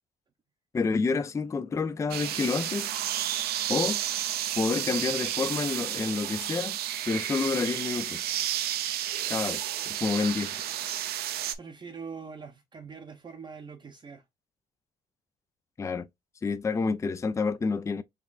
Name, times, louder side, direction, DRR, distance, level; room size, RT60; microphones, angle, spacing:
voice 1, 0.7-2.9 3.7-4.0 4.5-6.8 7.1-8.3 9.3-10.5 15.8-16.1 16.4-18.0, left 4 dB, 15° left, 0.4 m, -29 dB
sound 1, 2.1-11.5, right 11 dB, 70° right, 0.6 m, -31 dB
voice 2, 11.6-14.2, right 5 dB, 25° right, 0.6 m, -43 dB
5.1 x 3.1 x 2.4 m
cardioid pair, 110°, 17 cm